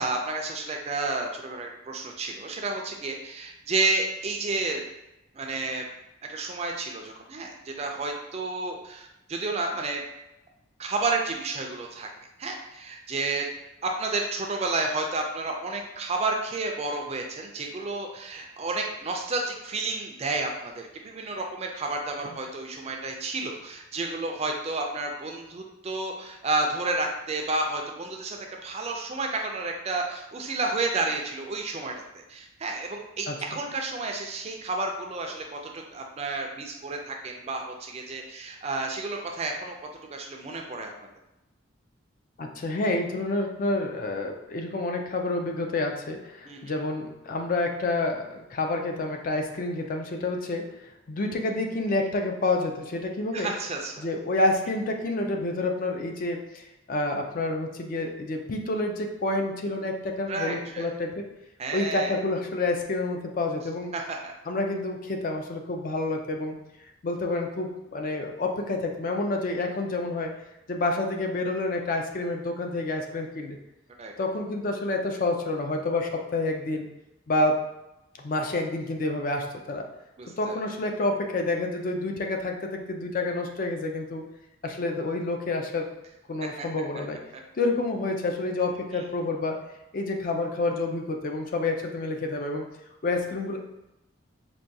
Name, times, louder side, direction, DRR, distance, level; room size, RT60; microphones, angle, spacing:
voice 1, 0.0-4.8 5.3-5.8 6.3-10.0 10.8-12.1 12.4-13.5 13.8-31.9 32.3-39.8 40.1-40.9 46.4-46.6 53.3-54.1 60.3-60.9 61.6-62.1 63.9-64.3 74.0-74.1 80.2-80.6 86.6-86.7 87.3-87.4, right 3 dB, 30° right, 2 dB, 0.4 m, -31 dB
voice 2, 42.4-50.7 51.1-53.5 54.0-61.3 61.7-63.9 64.5-66.6 67.0-70.3 70.7-73.6 74.2-76.9 77.3-77.6 78.2-79.8 80.4-84.2 84.6-85.9 86.3-87.2 87.6-89.6 89.9-92.7 93.0-93.6, left 2 dB, 45° left, 3 dB, 0.4 m, -28 dB
4.5 x 2.2 x 2.6 m, 0.93 s
head